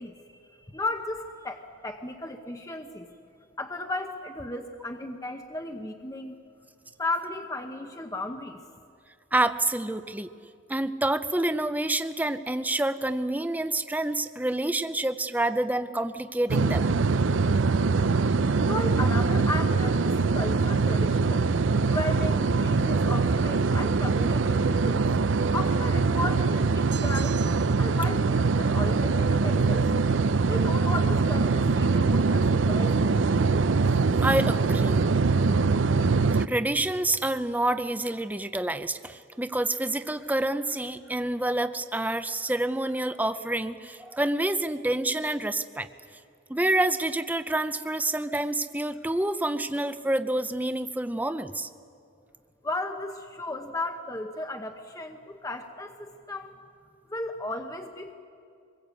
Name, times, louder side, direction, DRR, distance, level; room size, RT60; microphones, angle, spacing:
voice 1, 0.0-3.1 3.6-6.4 7.0-8.6 18.7-21.5 21.9-25.1 25.5-27.4 27.8-30.0 30.5-33.3 52.6-56.6 57.1-58.1, left 2 dB, 20° left, 4 dB, 0.9 m, -35 dB
voice 2, 9.3-10.3 10.7-16.9 34.2-35.0 36.5-45.9 46.5-51.7, right 1 dB, 10° right, 11 dB, 0.6 m, -28 dB
sound 1, 16.5-36.5, right 4 dB, 80° right, 0.6 m, -23 dB
sound 2, 26.9-27.9, right 10 dB, 60° right, 1.2 m, -42 dB
24.0 x 21.5 x 8.3 m, 2.4 s
head